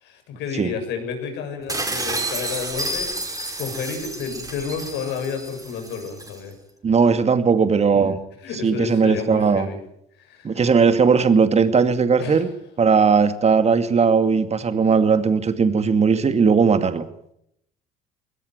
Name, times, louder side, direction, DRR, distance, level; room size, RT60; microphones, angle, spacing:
voice 1, 0.0-6.5 8.4-9.8 10.2-10.6 12.2-12.4, left 6 dB, 70° left, 6 dB, 7.1 m, -31 dB
sound 1, 1.7-6.4, right 2 dB, 20° right, 6.1 m, -30 dB
voice 2, 6.8-8.2 8.5-9.7 10.4-12.5 12.8-17.1, right 5 dB, 35° right, 10 dB, 2.3 m, -18 dB
21.5 x 18.5 x 9.6 m, 0.75 s
hypercardioid pair, 60°, 19 cm